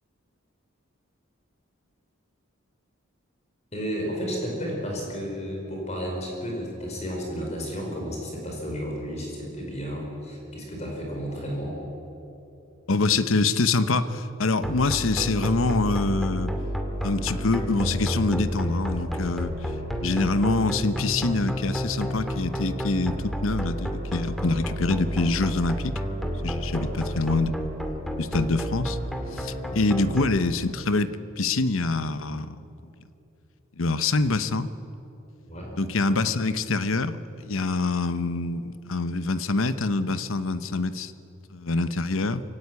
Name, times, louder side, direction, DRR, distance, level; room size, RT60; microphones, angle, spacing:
voice 1, 3.7-11.8 26.7-26.9 29.7-29.8 35.5-35.7, equal, 35° left, 0 dB, 4.9 m, -32 dB
voice 2, 12.9-16.5 17.0-19.5 20.0-25.9 26.4-27.5 28.2-29.0 29.3-32.9 33.8-34.7 35.8-41.1 41.5-42.4, left 3 dB, 80° left, 13 dB, 0.9 m, -25 dB
sound 1, 14.6-30.2, equal, ahead, 2.2 m, -30 dB
23.0 x 16.5 x 9.8 m, 2.9 s
head